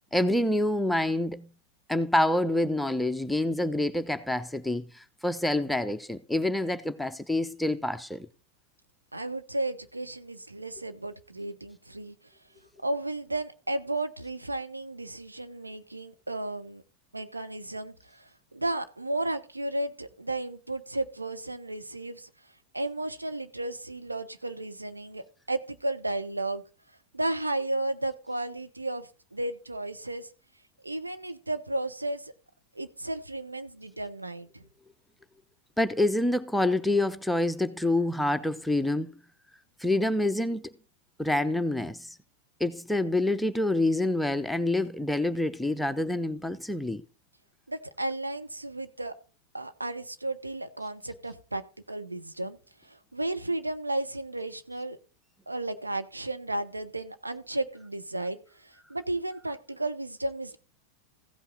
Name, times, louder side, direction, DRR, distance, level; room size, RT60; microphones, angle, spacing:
voice 1, 0.1-1.5 1.9-8.3 35.8-39.2 39.8-40.7 41.2-42.2 42.6-47.1, left 1 dB, ahead, 0.6 m, -27 dB
voice 2, 9.1-12.1 12.8-16.8 17.1-22.3 22.7-26.6 27.1-30.3 30.8-32.3 32.7-34.6 47.7-49.1 49.5-51.6 51.9-52.6 52.8-55.0 55.5-60.6, right 2 dB, 85° right, 0.9 m, -33 dB
15.5 x 5.6 x 4.0 m
figure-of-eight pair, 90°, 0 cm